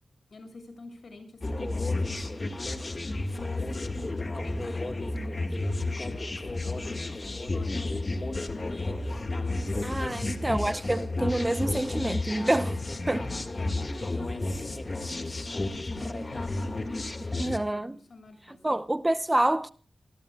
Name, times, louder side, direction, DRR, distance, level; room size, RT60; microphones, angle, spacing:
voice 1, 0.3-3.9 4.4-9.1 10.0-10.5 13.1-18.8, left 2 dB, 60° left, 7.0 m, -49 dB
sound 1, 1.4-17.6, left 2 dB, 35° left, 2.0 m, -32 dB
voice 2, 9.8-12.8 13.1-13.2 17.4-18.0 18.5-19.7, right 1 dB, 15° right, 0.7 m, -27 dB
27.5 x 19.5 x 2.3 m
wide cardioid pair, 105°, 0 cm